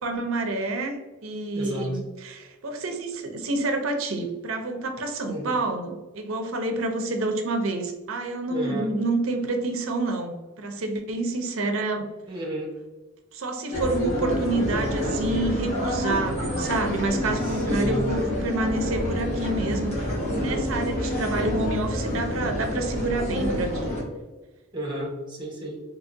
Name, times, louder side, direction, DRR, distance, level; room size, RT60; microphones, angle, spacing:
voice 1, 0.0-12.1 13.3-23.9, right 2 dB, 90° right, 4 dB, 0.6 m, -28 dB
voice 2, 1.5-1.9 5.3-5.5 8.5-8.9 12.3-12.7 17.4-18.1 20.3-20.7 24.7-25.8, equal, 20° right, -1 dB, 1.0 m, -32 dB
sound 1, 13.7-24.0, equal, 30° left, 1.3 m, -28 dB
3.8 x 2.8 x 2.6 m, 1.2 s
head